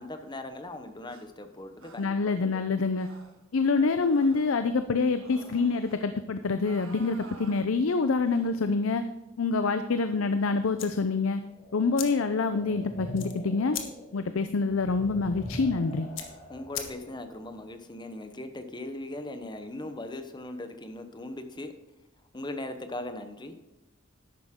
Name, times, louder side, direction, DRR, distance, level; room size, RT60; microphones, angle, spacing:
voice 1, 0.0-2.6 16.5-21.7 22.3-23.6, left 1 dB, 20° left, 8 dB, 0.9 m, -39 dB
sound 1, 1.1-1.2 1.8-2.1 3.0-3.4 4.0-4.6 5.2-6.0 6.6-7.6 8.2-8.5, right 3 dB, 85° right, 1.6 m, -50 dB
voice 2, 2.0-3.1 3.5-9.0 9.4-11.4 11.7-13.8 14.1-16.1, left 4 dB, 90° left, 9 dB, 0.6 m, -26 dB
sound 2, 3.7-8.8 11.4-17.8, equal, 40° left, 2.1 m, -46 dB
sound 3, 10.8-17.4, left 8 dB, 70° left, 1.5 m, -43 dB
11.5 x 9.0 x 3.7 m, 1.0 s
head